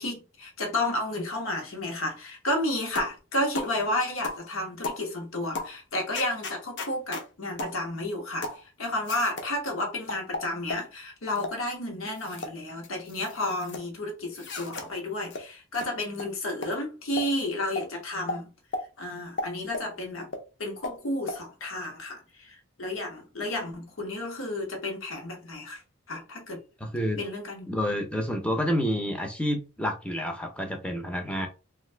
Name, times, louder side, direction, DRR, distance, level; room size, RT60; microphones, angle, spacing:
voice 1, 0.0-8.5 8.8-18.5 19.0-20.3 20.6-25.8 26.1-26.6 27.2-27.7, left 1 dB, 80° left, 1.0 m, -32 dB
sound 1, 3.0-3.2 3.5-3.7 4.2-4.4 4.8-5.0 5.5-5.7 6.1-7.3 7.6-7.8 8.4-8.6 9.1-9.5 10.1-10.9 11.4-11.6 12.1-12.5 12.8-13.8 14.3-14.9 15.3-15.4 15.7-15.9 16.1-16.3 16.6-16.7 17.2-17.3 17.8-17.9 18.3-18.4 18.7-18.8 19.4-19.9 20.3-20.4 20.8-21.0 21.3-21.4, left 2 dB, 55° left, 0.6 m, -34 dB
voice 2, 26.8-27.2 27.7-31.5, equal, 5° left, 0.5 m, -29 dB
2.6 x 2.4 x 3.2 m
head